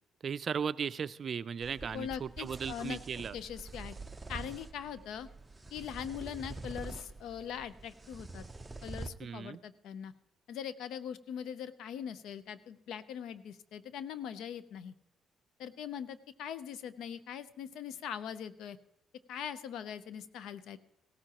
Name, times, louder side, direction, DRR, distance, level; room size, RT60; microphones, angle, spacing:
voice 1, 0.2-3.4 9.2-9.6, right 7 dB, 50° right, 16 dB, 0.4 m, -36 dB
sound 1, 1.6-9.1, right 3 dB, 15° right, 0.8 m, -46 dB
voice 2, 1.9-3.0 3.3-3.9 4.3-5.3 5.7-8.4 8.8-10.1 10.5-14.9 15.6-18.8 19.3-20.8, left 8 dB, 85° left, 15 dB, 0.6 m, -41 dB
17.0 x 14.0 x 3.0 m, 0.85 s
cardioid pair, 90°, 0 cm